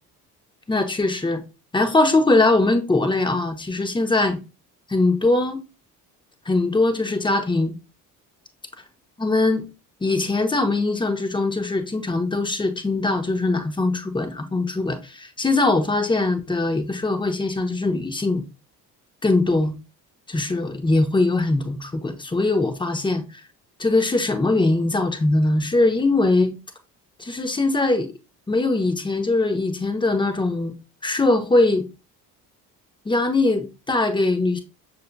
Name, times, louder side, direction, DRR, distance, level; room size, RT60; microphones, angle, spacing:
voice 1, 0.7-1.4 1.7-4.4 4.9-5.6 6.5-7.7 9.2-9.7 10.0-18.4 19.2-19.7 20.3-23.4 23.8-26.6 27.2-28.1 28.5-30.7 31.0-31.9 33.0-34.6, left 2 dB, 10° left, 0.8 m, -21 dB
6.5 x 2.7 x 2.2 m
figure-of-eight pair, 50°, 48 cm